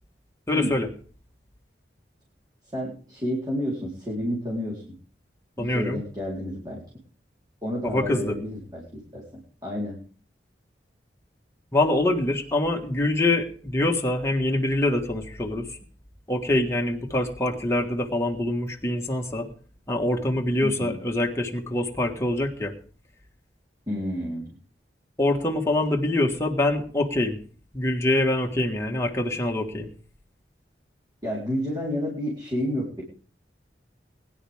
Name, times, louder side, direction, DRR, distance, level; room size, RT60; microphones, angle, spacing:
voice 1, 0.5-0.9 5.6-6.0 7.8-8.3 11.7-15.8 16.3-19.5 19.9-22.8 25.2-27.4 27.7-29.9, left 1 dB, 15° left, 1 dB, 1.7 m, -25 dB
voice 2, 2.7-4.8 5.6-6.8 7.6-9.2 9.6-10.0 20.6-21.0 23.9-24.5 31.2-33.0, equal, 25° right, -6 dB, 4.1 m, -30 dB
22.0 x 10.5 x 3.6 m, 0.42 s
head